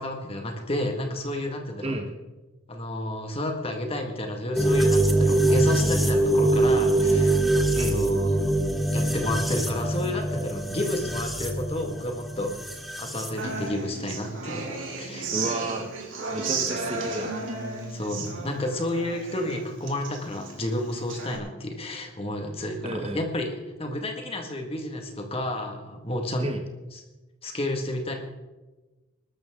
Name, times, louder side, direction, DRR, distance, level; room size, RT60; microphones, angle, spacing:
voice 1, 0.0-1.9 2.7-7.4 7.8-8.5 8.9-12.6 13.0-14.6 15.0-15.3 17.9-23.5 23.8-26.5 26.9-27.0 27.4-28.1, left 1 dB, 30° left, 3 dB, 1.9 m, -31 dB
sound 1, 4.6-13.3, right 1 dB, ahead, 1.1 m, -23 dB
Human voice / Acoustic guitar, 13.4-21.4, right 3 dB, 75° right, 2.9 m, -34 dB
voice 2, 15.3-15.9 16.3-17.3 18.3-18.5 22.8-23.2 26.4-26.6, right 2 dB, 30° right, 6 dB, 1.1 m, -31 dB
20.5 x 13.0 x 3.7 m, 1.1 s
head